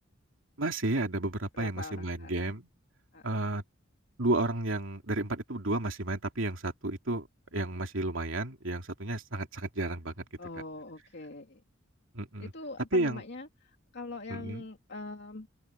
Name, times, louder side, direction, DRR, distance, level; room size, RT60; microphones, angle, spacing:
voice 1, 0.6-2.7 3.2-3.6 4.2-10.1 12.1-12.5 12.9-13.2 14.3-14.6, right 2 dB, 80° right, 2.8 m, -32 dB
voice 2, 1.5-2.5 3.1-3.4 10.4-11.6 12.4-15.5, left 3 dB, 60° left, 2.5 m, -43 dB
open air
head